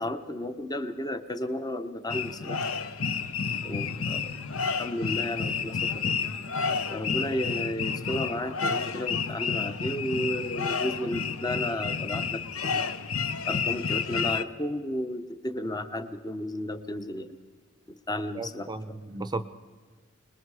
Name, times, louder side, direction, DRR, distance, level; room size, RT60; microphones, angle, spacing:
voice 1, 0.0-2.6 3.6-4.3 4.8-6.2 6.9-12.9 13.4-17.4 17.9-19.0, left 1 dB, 20° left, 10 dB, 0.8 m, -33 dB
sound 1, 2.1-14.4, left 5 dB, 75° left, 0.9 m, -30 dB
voice 2, 18.3-19.4, right 2 dB, 20° right, 12 dB, 0.6 m, -34 dB
26.5 x 20.5 x 4.8 m, 1.5 s
head